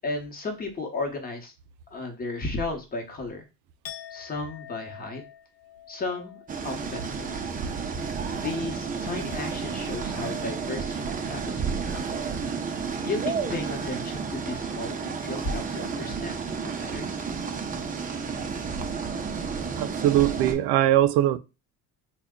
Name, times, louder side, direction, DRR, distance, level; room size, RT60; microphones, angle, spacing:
voice 1, 0.0-1.5 1.9-3.5 4.1-5.2 5.9-7.4 8.3-12.1 13.0-16.6 16.8-17.1, left 3 dB, 25° left, 1.0 m, -34 dB
Chink clink, 3.8-9.8 10.1-10.5, left 10 dB, 40° left, 0.6 m, -48 dB
sound 1, 6.5-20.5, right 5 dB, 25° right, 0.5 m, -31 dB
voice 2, 19.8-21.4, right 13 dB, 80° right, 0.5 m, -21 dB
3.4 x 2.3 x 3.6 m
cardioid pair, 125°, 37 cm